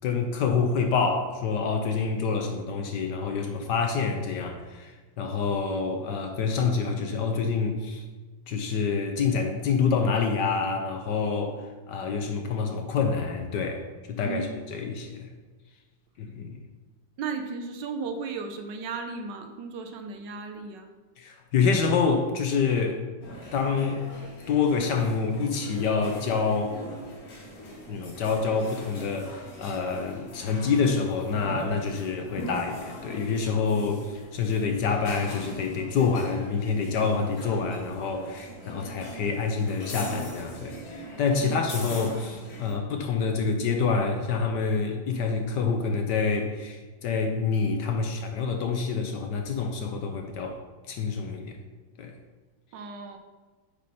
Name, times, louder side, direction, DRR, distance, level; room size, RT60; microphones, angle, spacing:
voice 1, 0.0-8.0 8.5-11.6 11.9-13.8 14.1-15.3 16.2-16.6 21.2-23.0 23.5-24.0 24.5-26.8 27.9-50.6 50.9-51.6 52.0-52.2, left 5 dB, 70° left, 4 dB, 1.2 m, -27 dB
voice 2, 14.2-14.5 17.2-20.9 41.4-41.6 52.7-53.2, right 5 dB, 70° right, 5 dB, 1.2 m, -35 dB
sound 1, 23.2-42.7, equal, 50° left, 1.8 m, -42 dB
8.2 x 4.9 x 4.3 m, 1.3 s
omnidirectional pair, 2.2 m